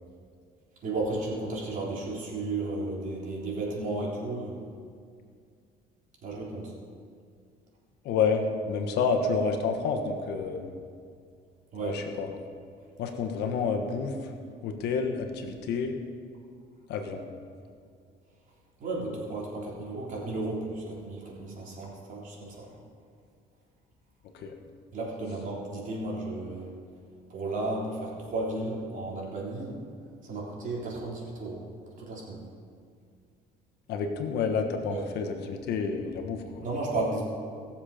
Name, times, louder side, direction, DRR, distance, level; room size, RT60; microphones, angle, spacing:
voice 1, 0.8-4.6 6.2-6.7 11.7-12.0 18.8-22.7 24.9-26.7 27.3-29.7 30.2-31.6 32.0-32.5 34.8-35.0 36.6-37.2, right 2 dB, 50° right, -4 dB, 3.6 m, -33 dB
voice 2, 8.0-10.7 11.8-12.3 13.0-14.3 14.6-16.0 16.9-17.3 24.3-24.5 33.9-36.7, left 5 dB, 80° left, 4 dB, 1.3 m, -29 dB
18.5 x 7.2 x 5.1 m, 2.2 s
cardioid pair, 110°, 17 cm